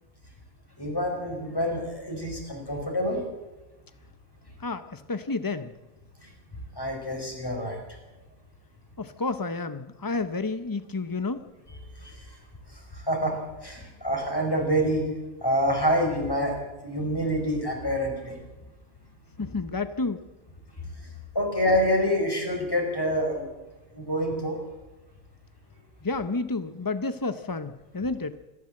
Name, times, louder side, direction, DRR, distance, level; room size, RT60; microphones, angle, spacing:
voice 1, 0.8-3.2 6.2-6.3 6.8-7.8 12.0-12.2 12.7-13.4 13.6-15.1 15.4-18.4 21.3-23.5 23.9-24.6, equal, 15° left, 1 dB, 5.0 m, -27 dB
voice 2, 4.6-5.7 9.0-11.4 19.4-20.2 26.0-28.4, left 3 dB, 30° left, 10 dB, 0.3 m, -30 dB
27.0 x 12.5 x 7.7 m, 1.1 s
omnidirectional pair, 1.5 m